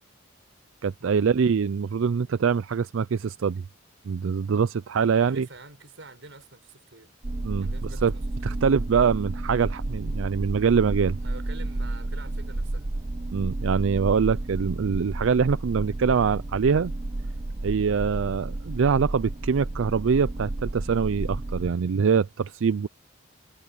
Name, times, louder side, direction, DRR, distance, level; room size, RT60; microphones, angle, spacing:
voice 1, 0.8-3.6 4.1-5.5 7.4-7.7 8.0-8.1 8.4-11.2 13.3-16.9 17.6-22.9, right 6 dB, 80° right, 0.4 m, -24 dB
voice 2, 5.2-7.1 7.6-8.6 11.2-12.9, right 3 dB, 65° right, 6.4 m, -47 dB
sound 1, 7.2-21.7, right 2 dB, 30° right, 0.6 m, -31 dB
head